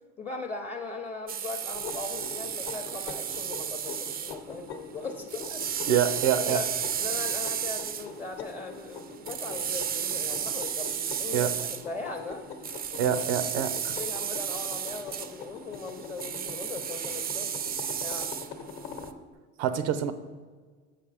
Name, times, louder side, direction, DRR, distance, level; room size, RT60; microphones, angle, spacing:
voice 1, 0.2-5.8 6.3-6.7 7.0-11.5 11.8-12.5 12.9-13.2 13.5-17.5 18.0-18.3, left 3 dB, 20° left, 3 dB, 0.6 m, -39 dB
sound 1, 1.3-4.4 4.7-4.8 5.0-11.9 12.6-19.1, right 8 dB, 30° right, 0.3 m, -33 dB
sound 2, 1.7-19.2, left 4 dB, 45° left, 0.9 m, -43 dB
voice 2, 5.9-6.6 11.3-11.5 13.0-13.9 19.6-20.1, right 9 dB, 85° right, 11 dB, 0.6 m, -26 dB
7.1 x 5.7 x 3.4 m, 1.5 s
supercardioid pair, 85°, 34 cm